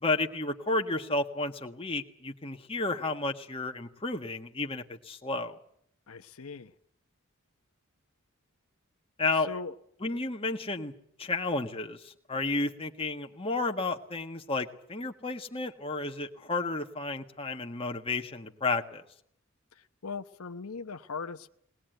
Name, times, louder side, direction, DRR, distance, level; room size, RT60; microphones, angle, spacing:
voice 1, 0.0-5.6 9.2-9.5 10.0-10.9 11.2-19.0, left 3 dB, 25° left, 1.6 m, -32 dB
voice 2, 6.1-6.7 9.4-9.7 19.7-21.5, left 4 dB, 85° left, 0.9 m, -40 dB
22.0 x 20.0 x 9.2 m
head